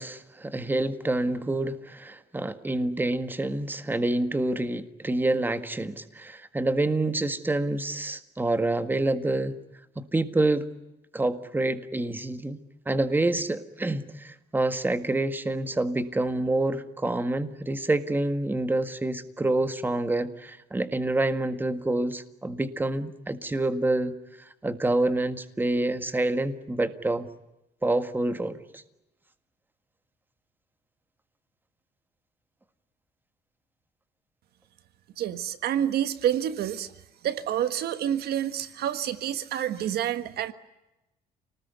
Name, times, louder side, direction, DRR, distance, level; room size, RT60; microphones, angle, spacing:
voice 1, 0.0-9.6 9.9-10.7 11.1-27.3 27.8-28.8, right 2 dB, 10° right, 10 dB, 1.7 m, -27 dB
voice 2, 35.2-36.9 37.2-40.5, right 10 dB, 70° right, 11 dB, 1.6 m, -28 dB
29.5 x 19.5 x 9.3 m, 0.97 s
cardioid pair, 110°, 17 cm